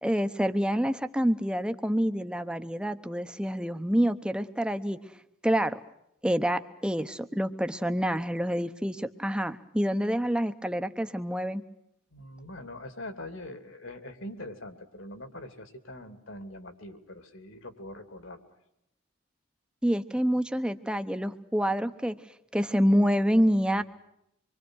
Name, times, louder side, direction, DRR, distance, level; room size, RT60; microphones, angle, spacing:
voice 1, 0.0-5.0 5.4-5.8 6.2-11.6 19.8-22.1 22.5-23.8, equal, 5° right, 9 dB, 1.0 m, -27 dB
voice 2, 12.1-18.4, left 1 dB, 65° left, 9 dB, 2.9 m, -43 dB
26.0 x 24.0 x 6.4 m, 0.79 s
head